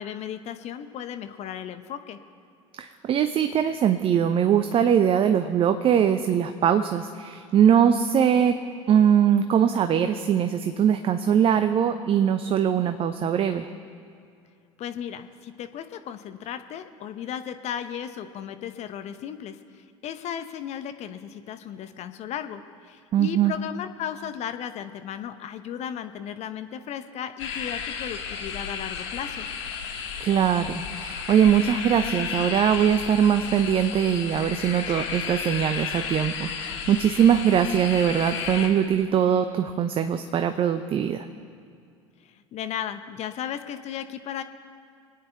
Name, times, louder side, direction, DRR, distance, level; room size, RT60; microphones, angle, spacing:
voice 1, 0.0-2.2 14.8-29.5 42.2-44.4, left 9 dB, 45° left, 9 dB, 0.9 m, -35 dB
voice 2, 2.8-8.6 8.9-13.7 23.1-23.5 30.2-41.3, right 8 dB, 35° right, 8 dB, 0.7 m, -22 dB
sound 1, 27.4-38.7, left 6 dB, 65° left, 1.7 m, -33 dB
24.5 x 9.5 x 4.5 m, 2.4 s
figure-of-eight pair, 70°, 16 cm